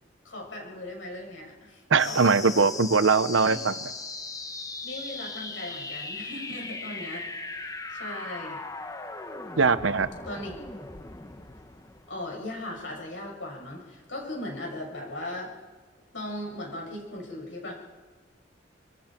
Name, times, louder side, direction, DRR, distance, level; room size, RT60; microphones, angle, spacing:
voice 1, 0.2-2.7 3.4-3.6 4.8-8.6 10.2-10.5 12.1-15.5 16.1-17.7, left 1 dB, 75° left, -1 dB, 7.0 m, -38 dB
voice 2, 1.9-3.7 9.6-10.1, right 4 dB, 85° right, 13 dB, 0.9 m, -21 dB
sound 1, 2.0-13.0, left 3 dB, 20° left, 1.1 m, -39 dB
25.5 x 24.5 x 4.5 m, 1.5 s
head